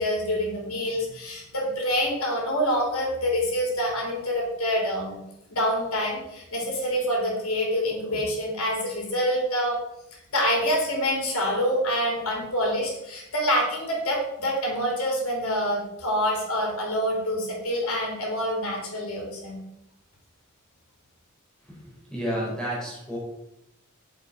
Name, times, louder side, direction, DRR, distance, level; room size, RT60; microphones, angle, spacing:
voice 1, 0.0-5.2 5.5-9.8 10.3-19.6, equal, 70° left, -1 dB, 4.0 m, -26 dB
voice 2, 21.6-23.2, equal, 5° left, -6 dB, 4.5 m, -31 dB
8.2 x 7.2 x 6.0 m, 0.84 s
head